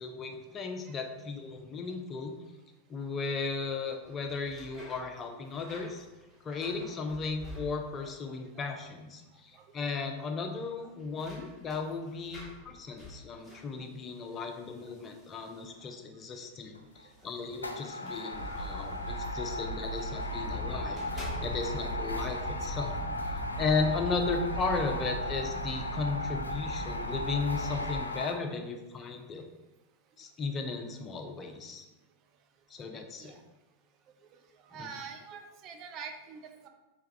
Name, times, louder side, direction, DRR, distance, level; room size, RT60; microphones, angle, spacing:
voice 1, 0.0-2.3 2.9-6.1 6.4-23.0 23.6-29.5 30.2-31.9 32.7-33.3 34.7-34.9, left 4 dB, 25° left, 4 dB, 0.5 m, -35 dB
sound 1, 3.8-8.2 8.4-9.1 9.4-9.5 10.6-16.0 16.9-20.4 20.8-22.0, equal, ahead, 1.3 m, -50 dB
voice 2, 8.3-8.8 9.5-9.6 11.4-11.5 14.2-14.4 33.2-33.4 34.7-36.7, right 6 dB, 35° right, 5 dB, 0.5 m, -46 dB
sound 2, 16.7-17.0 17.5-28.3, left 1 dB, 80° left, 0.4 m, -37 dB
sound 3, 18.3-28.0, right 1 dB, 40° left, 1.1 m, -39 dB
4.6 x 3.3 x 3.1 m, 1.1 s
figure-of-eight pair, 90°, 0 cm